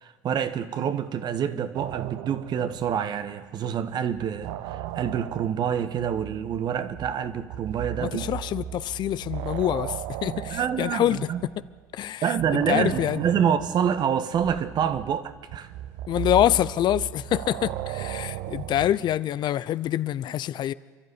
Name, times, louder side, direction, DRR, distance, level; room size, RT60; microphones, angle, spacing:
voice 1, 0.0-8.2 10.5-11.4 12.2-15.7, right 8 dB, 50° right, 1.5 m, -27 dB
sound 1, 1.7-3.6 3.9-11.8 12.4-19.2, right 12 dB, 70° right, 1.0 m, -36 dB
voice 2, 8.0-11.3 11.9-13.3 16.1-20.7, left 12 dB, 50° left, 0.7 m, -26 dB
29.0 x 12.0 x 9.9 m
hypercardioid pair, 70°, 10 cm